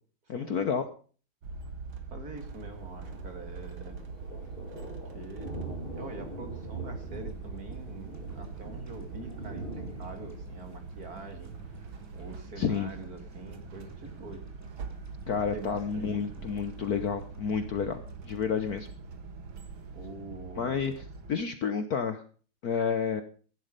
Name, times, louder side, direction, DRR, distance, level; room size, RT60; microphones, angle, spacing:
voice 1, 0.3-0.8 12.6-12.9 15.3-18.9 20.6-22.2 22.6-23.2, left 6 dB, 55° left, 9 dB, 1.2 m, -30 dB
sound 1, 1.4-21.3, right 4 dB, 65° right, 2.3 m, -43 dB
voice 2, 2.1-4.0 5.1-5.5 5.9-11.9 12.1-14.4 15.5-16.3 19.9-20.8, right 3 dB, 45° right, 6 dB, 2.6 m, -45 dB
Thunder, 2.4-12.4, right 2 dB, 25° right, 3.4 m, -43 dB
sound 2, 7.1-19.3, right 1 dB, 5° right, 2.9 m, -56 dB
15.5 x 11.5 x 5.2 m, 0.41 s
omnidirectional pair, 2.4 m